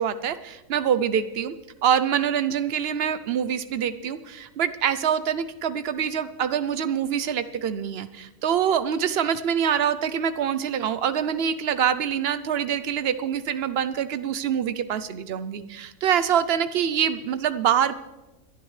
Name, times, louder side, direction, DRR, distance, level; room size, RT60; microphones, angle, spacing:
voice 1, 0.0-1.5 1.8-17.9, right 8 dB, 75° right, 12 dB, 0.5 m, -25 dB
27.0 x 11.0 x 3.2 m, 1.1 s
omnidirectional pair, 1.7 m